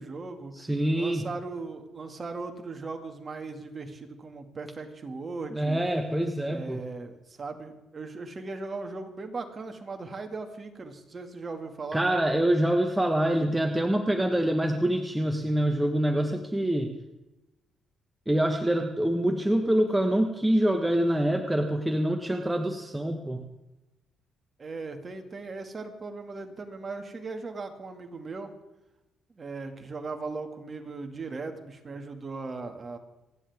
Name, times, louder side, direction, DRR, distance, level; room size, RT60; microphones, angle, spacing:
voice 1, 0.0-0.5 0.9-5.8 6.5-12.1 24.6-28.6 29.4-33.0, right 3 dB, 35° right, 5 dB, 2.2 m, -38 dB
voice 2, 0.6-1.3 5.5-6.8 11.9-16.9 18.3-23.4, right 1 dB, 10° right, 4 dB, 1.3 m, -25 dB
28.5 x 10.0 x 3.6 m, 1.0 s
cardioid pair, 90°, 0 cm